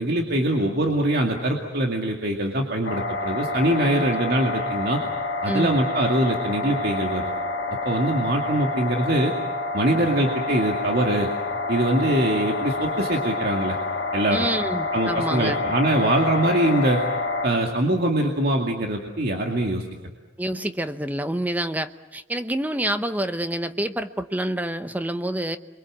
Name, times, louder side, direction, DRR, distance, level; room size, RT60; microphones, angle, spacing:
voice 1, 0.0-5.0 5.4-7.4 7.8-9.3 9.7-11.3 11.7-13.8 14.1-14.4 14.9-17.0 17.4-19.8, right 1 dB, 55° right, 1 dB, 2.3 m, -23 dB
sound 1, 2.8-17.5, left 2 dB, 65° left, 2.1 m, -28 dB
voice 2, 5.5-5.8 14.3-15.6 20.4-25.6, right 1 dB, 10° right, 10 dB, 0.8 m, -27 dB
28.5 x 23.0 x 7.5 m, 1.0 s
head